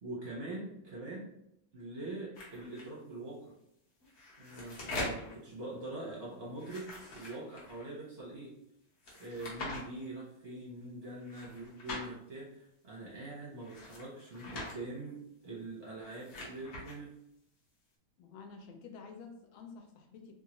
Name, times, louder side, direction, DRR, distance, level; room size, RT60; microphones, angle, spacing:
voice 1, 0.0-1.3 1.7-3.5 4.4-8.5 9.2-17.1, right 2 dB, 50° right, -6 dB, 0.7 m, -43 dB
sound 1, 2.4-2.9 4.0-5.4 6.5-7.8 9.0-9.8 11.2-12.1 13.6-14.8 15.9-17.0, left 2 dB, 50° left, 0.9 m, -43 dB
voice 2, 18.2-20.3, left 5 dB, 85° left, 4 dB, 1.4 m, -50 dB
3.6 x 2.3 x 2.9 m, 0.79 s
omnidirectional pair, 2.2 m